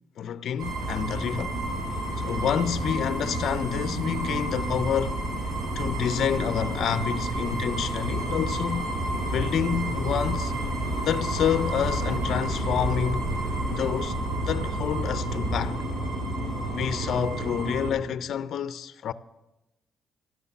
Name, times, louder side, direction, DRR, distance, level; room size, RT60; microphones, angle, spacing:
voice 1, 0.2-1.6 2.2-5.2 5.8-8.9 9.3-10.5 11.0-13.3 13.7-14.1 14.5-15.8 16.7-19.1, left 8 dB, 70° left, 0.5 m, -28 dB
sound 1, 0.6-17.9, right 1 dB, 70° right, 7.2 m, -29 dB
12.5 x 11.0 x 7.1 m
cardioid pair, 90°, 0 cm